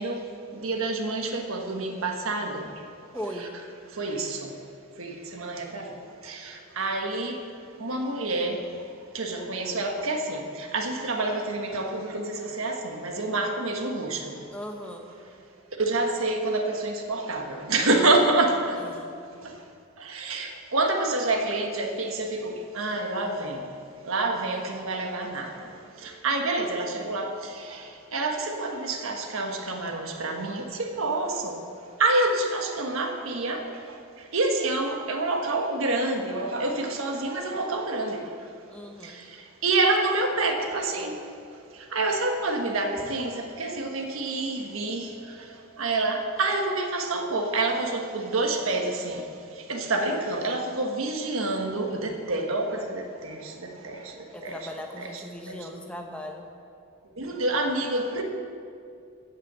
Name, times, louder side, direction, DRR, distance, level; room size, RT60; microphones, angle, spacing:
voice 1, 0.0-2.8 3.4-3.5 3.9-4.6 5.0-7.4 7.8-14.5 15.8-18.9 19.4-19.6 20.0-38.5 39.0-54.7 55.0-55.7 57.0-58.2, right 2 dB, 80° right, 1.4 m, -28 dB
voice 2, 3.1-3.5 14.5-15.1 18.8-19.2 38.7-39.2 54.3-56.5, equal, 5° left, 1.0 m, -38 dB
15.5 x 5.9 x 7.4 m
head